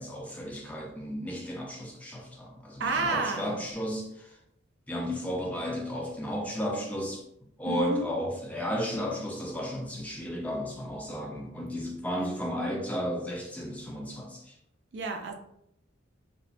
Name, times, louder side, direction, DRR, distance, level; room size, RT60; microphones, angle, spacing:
voice 1, 0.0-4.4 4.9-7.2 7.6-14.6, equal, 10° left, 0 dB, 0.4 m, -33 dB
voice 2, 2.8-3.6 7.6-8.1 12.1-12.3 14.9-15.3, right 3 dB, 65° right, 4 dB, 0.4 m, -31 dB
2.9 x 2.1 x 2.5 m, 0.76 s
head